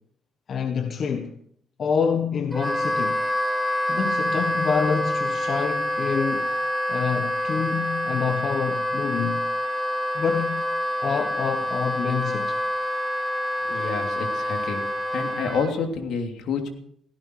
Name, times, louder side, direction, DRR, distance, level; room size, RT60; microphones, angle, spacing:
voice 1, 0.5-1.3 1.8-3.2 3.9-6.5 6.9-9.4 10.1-10.6 11.0-12.6, left 6 dB, 55° left, 1.3 m, -27 dB
Wind instrument woodwind instrument, 2.5-15.7, left 1 dB, 5° right, 3.4 m, -27 dB
voice 2, 13.7-14.8 15.1-16.7, left 5 dB, 80° left, 3.1 m, -28 dB
17.0 x 16.5 x 4.8 m
cardioid pair, 90°, 0 cm